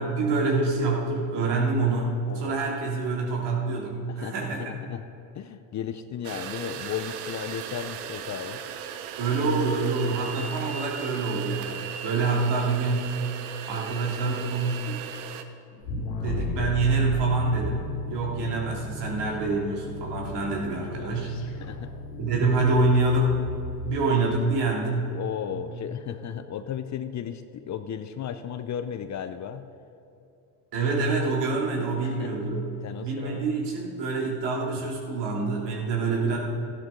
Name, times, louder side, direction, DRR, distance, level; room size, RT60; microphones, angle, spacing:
voice 1, 0.0-4.7 9.2-13.2 13.7-15.0 15.8-21.3 22.2-23.3 23.8-25.2 25.5-25.7 30.7-32.6 33.0-36.4, right 3 dB, 60° right, -2 dB, 3.0 m, -26 dB
voice 2, 2.3-2.6 4.1-5.1 5.3-8.6 10.0-10.4 21.0-21.1 21.6-21.9 25.1-29.7 32.0-32.6 32.8-33.5 34.7-34.8, left 9 dB, 40° left, 11 dB, 0.6 m, -35 dB
sound 1, 6.2-15.4, right 9 dB, 80° right, 0.9 m, -37 dB
sound 2, 15.8-24.0, left 2 dB, 80° left, 1.8 m, -35 dB
13.5 x 11.5 x 3.8 m, 2.9 s
supercardioid pair, 85°, 46 cm